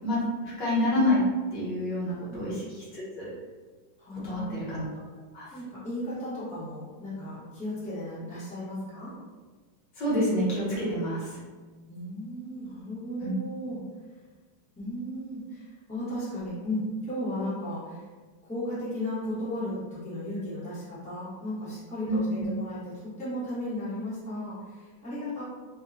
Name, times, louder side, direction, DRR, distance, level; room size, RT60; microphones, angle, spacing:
voice 1, 0.0-1.2 1.5-3.3 4.2-4.9 5.3-5.5 10.0-11.4 13.2-13.3 22.0-22.2, left 1 dB, 60° left, -8 dB, 1.6 m, -28 dB
voice 2, 4.0-4.6 5.5-9.1 11.9-13.8 14.7-18.0 18.4-25.4, left 1 dB, 5° left, -11 dB, 0.6 m, -35 dB
3.6 x 2.2 x 2.6 m, 1.4 s
omnidirectional pair, 2.2 m